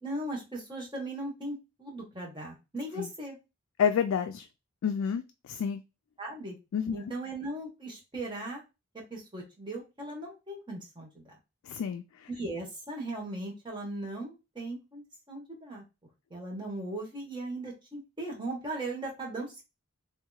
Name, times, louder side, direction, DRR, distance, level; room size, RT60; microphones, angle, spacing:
voice 1, 0.0-3.4 6.2-6.6 6.9-8.6 8.9-11.3 12.3-15.8 16.3-19.6, right 2 dB, 20° right, 1.1 m, -38 dB
voice 2, 3.8-4.5 4.8-5.8 6.7-7.0 11.7-12.3, left 7 dB, 80° left, 0.3 m, -29 dB
3.4 x 2.9 x 2.2 m
head